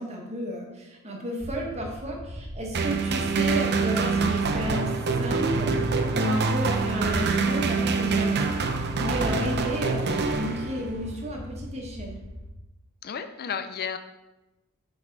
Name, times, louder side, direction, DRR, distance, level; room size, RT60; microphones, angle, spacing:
voice 1, 0.0-12.2, equal, 30° right, -1 dB, 1.4 m, -33 dB
sound 1, 1.4-12.5, equal, 10° right, 1.5 m, -40 dB
sound 2, 2.7-11.1, right 4 dB, 50° right, 0.7 m, -25 dB
voice 2, 13.0-14.0, left 7 dB, 45° left, 9 dB, 0.4 m, -32 dB
6.1 x 5.3 x 4.7 m, 1.0 s
head